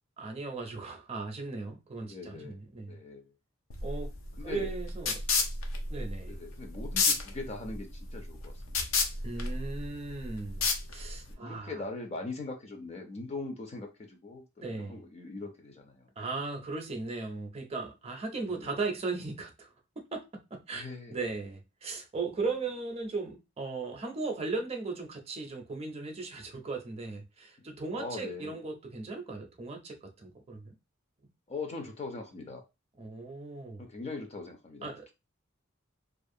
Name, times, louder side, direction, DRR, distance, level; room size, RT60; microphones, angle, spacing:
voice 1, 0.2-3.0 3.8-4.1 4.4-5.2 5.9-6.4 9.2-11.8 14.6-15.0 16.2-19.7 20.1-20.2 20.5-30.7 33.0-33.8 34.8-35.1, right 3 dB, 30° right, 0.5 m, -37 dB
voice 2, 2.0-2.6 2.9-3.3 4.4-4.7 6.3-8.8 11.3-16.1 18.5-18.7 20.7-21.2 27.9-28.6 31.5-32.6 33.8-35.1, left 3 dB, 35° left, 0.4 m, -41 dB
sound 1, 3.7-11.3, left 4 dB, 90° left, 0.5 m, -32 dB
2.4 x 2.1 x 2.6 m
head